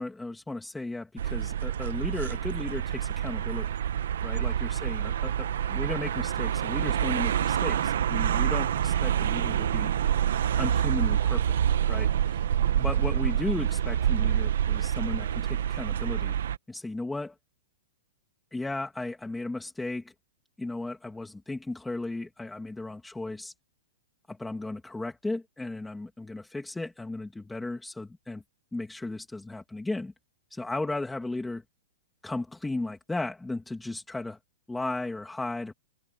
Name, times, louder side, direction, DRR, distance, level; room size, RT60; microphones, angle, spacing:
voice 1, 0.0-3.7 4.2-9.9 10.6-11.6 11.9-12.4 12.8-16.3 16.7-17.4 18.5-20.1 20.6-23.5 24.3-28.4 28.7-30.1 30.5-31.6 32.2-34.4 34.7-35.7, left 2 dB, 5° left, 1.9 m, -35 dB
sound 1, 1.2-16.6, right 9 dB, 70° right, 1.0 m, -27 dB
supercardioid pair, 175°, 0 cm